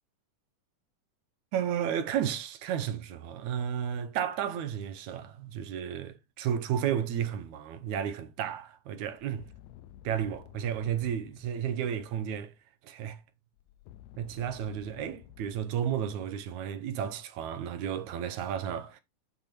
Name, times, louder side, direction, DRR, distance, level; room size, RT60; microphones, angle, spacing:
voice 1, 1.5-9.5 10.0-12.5 12.8-13.2 14.2-19.0, right 9 dB, 75° right, 2.0 m, -32 dB
sound 1, 9.1-12.4 13.6-16.9, left 11 dB, 75° left, 1.8 m, -53 dB
7.0 x 5.7 x 4.4 m
omnidirectional pair, 3.7 m